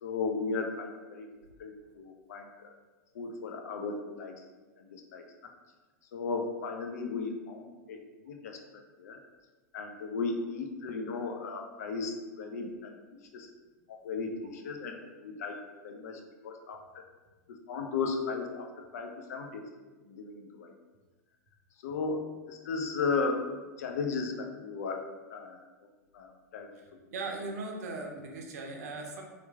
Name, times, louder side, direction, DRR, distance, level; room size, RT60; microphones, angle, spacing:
voice 1, 0.0-1.3 1.6-2.7 3.1-4.3 4.8-5.2 6.1-8.6 9.0-9.2 9.7-12.9 13.3-13.5 13.9-17.0 17.7-18.7 18.9-19.6 20.0-20.7 21.8-22.2 22.5-23.4 23.8-25.0 25.3-25.6 26.1-26.8, left 4 dB, 65° left, 2 dB, 0.5 m, -35 dB
voice 2, 26.8-29.2, right 3 dB, 60° right, 1 dB, 0.6 m, -39 dB
2.9 x 2.4 x 3.3 m, 1.2 s
figure-of-eight pair, 90°, 9 cm